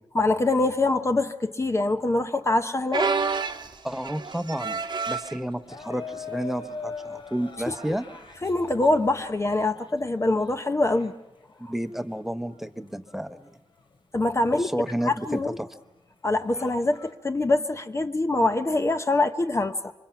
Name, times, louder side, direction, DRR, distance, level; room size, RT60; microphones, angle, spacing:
voice 1, 0.1-3.1 7.7-8.0 8.4-11.1 14.1-14.7 15.0-15.6 16.2-19.9, left 2 dB, 30° left, 0.8 m, -24 dB
sound 1, 2.9-5.4 6.1-6.4 6.7-6.8 7.7-8.0 9.6-9.7, right 5 dB, 50° right, 1.1 m, -29 dB
voice 2, 3.8-4.8 5.1-8.0 11.7-13.6 14.4-15.7, right 1 dB, 5° right, 0.9 m, -31 dB
sound 2, 5.7-12.2 12.6-14.0 14.3-14.7 15.3-15.4 15.9-17.2, left 4 dB, 60° left, 2.5 m, -42 dB
27.0 x 24.5 x 5.9 m
wide cardioid pair, 115°, 10 cm